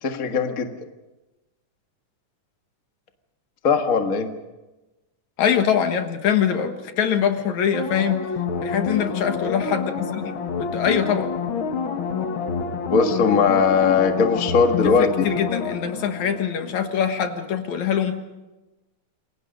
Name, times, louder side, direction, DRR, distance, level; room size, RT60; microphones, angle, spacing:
voice 1, 0.0-0.7 3.6-4.3 12.9-15.3, left 5 dB, 35° left, 5 dB, 1.6 m, -19 dB
voice 2, 5.4-8.2 8.6-11.3 14.8-18.2, left 8 dB, 70° left, 7 dB, 2.7 m, -23 dB
sound 1, 7.7-17.1 17.5-17.6, left 5 dB, 50° left, 1.8 m, -28 dB
28.0 x 23.0 x 5.3 m, 1.1 s
omnidirectional pair, 3.5 m